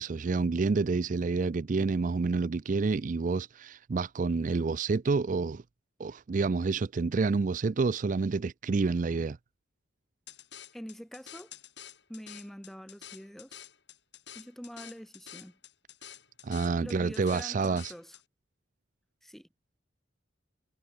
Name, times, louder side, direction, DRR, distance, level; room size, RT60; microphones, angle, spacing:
voice 1, 0.0-5.6 6.0-9.4 16.4-17.9, right 4 dB, 40° right, 0.4 m, -28 dB
sound 1, 10.3-18.2, left 10 dB, 60° left, 4.4 m, -49 dB
voice 2, 10.7-11.5 12.1-13.6 14.3-15.6 16.8-18.2 19.2-19.5, equal, ahead, 1.3 m, -45 dB
head